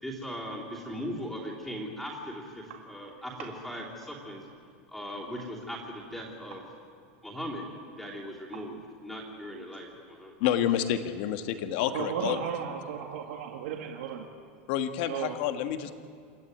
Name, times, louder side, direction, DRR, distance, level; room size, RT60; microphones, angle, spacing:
voice 1, 0.0-4.4 4.9-6.6 7.2-7.6 8.0-8.8 9.0-10.3, equal, 5° left, -4 dB, 3.2 m, -39 dB
voice 2, 10.4-12.4 14.7-15.9, left 10 dB, 55° left, 8 dB, 1.5 m, -29 dB
voice 3, 11.9-14.3 15.1-15.4, right 9 dB, 80° right, 2 dB, 2.0 m, -34 dB
27.5 x 12.5 x 9.5 m, 2.2 s
supercardioid pair, 165°, 6 cm